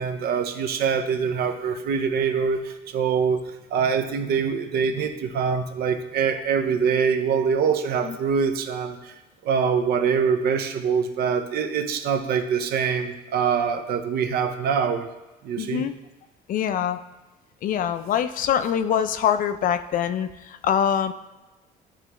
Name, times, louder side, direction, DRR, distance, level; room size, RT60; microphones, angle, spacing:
voice 1, 0.0-3.4 3.7-9.1 9.4-15.1 15.4-15.9, right 6 dB, 65° right, 8 dB, 0.6 m, -24 dB
voice 2, 15.6-16.0 16.5-17.0 17.6-21.1, left 9 dB, 55° left, 11 dB, 0.4 m, -24 dB
9.8 x 3.3 x 3.0 m, 1.1 s
cardioid pair, 110°, 17 cm